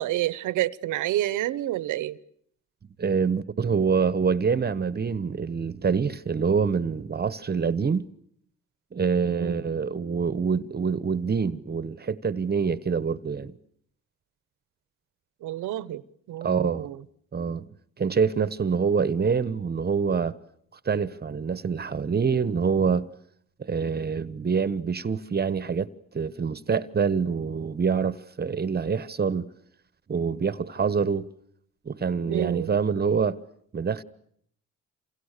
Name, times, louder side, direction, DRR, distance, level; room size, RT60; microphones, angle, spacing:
voice 1, 0.0-2.2 9.3-9.7 15.4-16.0 16.3-17.0 32.3-32.8, right 14 dB, 85° right, 1.0 m, -29 dB
voice 2, 3.0-8.1 8.9-13.5 16.4-16.9 17.3-17.7 18.0-20.3 20.8-23.1 23.6-29.5 30.1-31.3 31.8-33.4 33.7-34.0, right 6 dB, 30° right, 1.1 m, -26 dB
28.5 x 27.0 x 6.7 m
cardioid pair, 90°, 30 cm